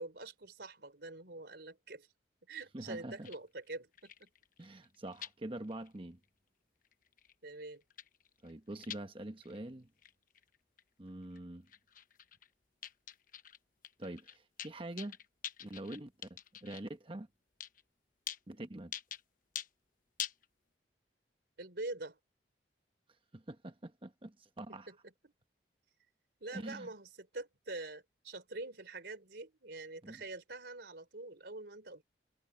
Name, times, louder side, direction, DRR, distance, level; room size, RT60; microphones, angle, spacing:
voice 1, 0.0-2.1 2.5-4.3 7.4-7.8 21.6-22.2 24.7-25.3 26.4-32.0, right 2 dB, 65° right, 4.0 m, -45 dB
voice 2, 2.7-3.3 4.6-6.2 8.4-9.9 11.0-11.7 14.0-15.2 15.6-17.3 18.5-18.9 23.3-24.9 26.5-26.9 30.0-30.2, right 1 dB, 30° right, 1.1 m, -45 dB
sound 1, 3.2-3.4 3.6-3.7 3.9-5.3 5.6-6.0 6.2-6.3 6.8-7.5 7.8-9.0 9.4-9.6 10.0-10.8 11.1-11.4 11.7-12.5 12.8-13.6 13.8-16.8 17.6-17.8 18.3-18.4 18.9-19.2 19.6-19.7 20.2-20.5, left 9 dB, 50° left, 1.0 m, -45 dB
head